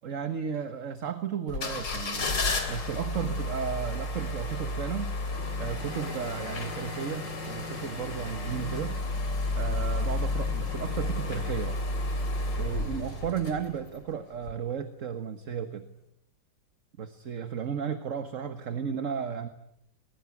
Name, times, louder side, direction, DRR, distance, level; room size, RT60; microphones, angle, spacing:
voice 1, 0.0-2.3 2.7-5.2 5.6-9.0 9.5-11.8 12.6-15.9 17.0-19.5, right 7 dB, 45° right, 9 dB, 1.5 m, -34 dB
sound 1, 1.5-14.0 14.4-14.5, left 2 dB, 70° left, 3.6 m, -32 dB
sound 2, 12.6-14.0, right 4 dB, 85° right, 4.0 m, -46 dB
22.0 x 22.0 x 9.8 m, 0.77 s
omnidirectional pair, 2.1 m